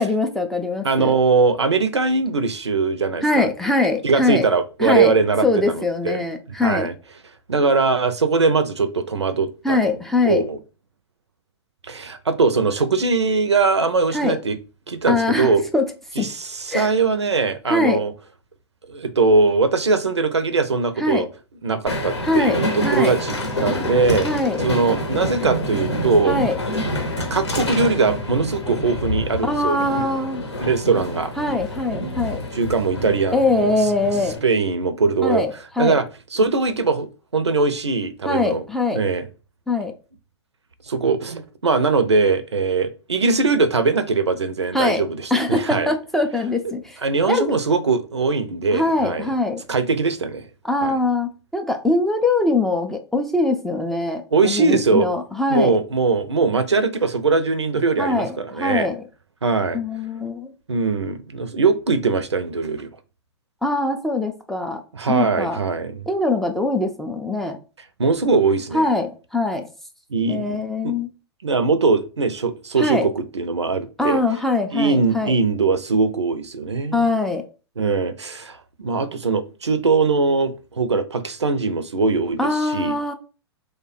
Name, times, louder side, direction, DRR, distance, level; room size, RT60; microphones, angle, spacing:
voice 1, 0.0-1.2 3.2-4.5 4.8-5.2 5.4-6.9 9.6-10.4 14.1-14.4 15.1-15.9 16.2-16.3 16.7-16.9 17.7-18.0 21.0-21.3 22.2-23.2 24.2-24.6 26.3-26.6 29.4-30.4 31.4-32.4 33.3-34.4 35.2-36.0 38.2-39.0 39.7-39.9 44.7-45.0 45.3-47.0 47.3-47.4 48.7-49.6 50.6-55.8 58.0-59.0 59.7-60.5 63.6-64.8 65.1-65.6 66.1-67.6 68.7-69.7 70.3-71.1 72.8-73.1 74.0-75.3 76.9-77.4 82.4-83.1, left 2 dB, ahead, 0.3 m, -22 dB
voice 2, 0.8-3.5 4.0-5.8 6.0-6.2 6.6-6.9 7.5-9.9 10.2-10.6 11.9-14.6 14.9-15.6 16.2-18.1 18.9-21.3 21.6-24.3 24.6-26.3 27.3-29.8 30.6-31.3 32.5-33.7 34.4-35.4 35.8-36.1 36.3-37.1 37.3-38.6 38.9-39.3 40.9-45.9 47.0-49.3 49.7-50.5 50.8-51.0 54.3-55.1 55.5-58.9 59.4-59.8 60.7-62.9 64.9-66.1 68.0-68.8 70.1-70.9 71.4-74.2 74.7-77.1 77.8-83.0, right 4 dB, 85° right, 0.5 m, -21 dB
Train, 21.9-34.4, left 1 dB, 85° left, 0.8 m, -27 dB
3.2 x 2.1 x 4.0 m
figure-of-eight pair, 105°, 14 cm